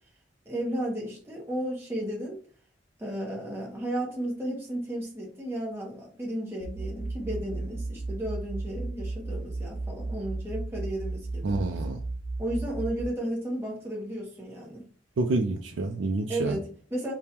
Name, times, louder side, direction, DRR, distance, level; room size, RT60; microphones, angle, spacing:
voice 1, 0.4-2.4 3.0-11.6 12.4-14.9 16.3-17.1, right 1 dB, 15° right, -3 dB, 0.8 m, -33 dB
sound 1, 6.6-13.0, right 2 dB, 55° left, 0.8 m, -34 dB
voice 2, 11.4-12.0 15.2-16.6, right 2 dB, 85° right, 3 dB, 0.4 m, -28 dB
5.2 x 2.2 x 2.9 m, 0.42 s
head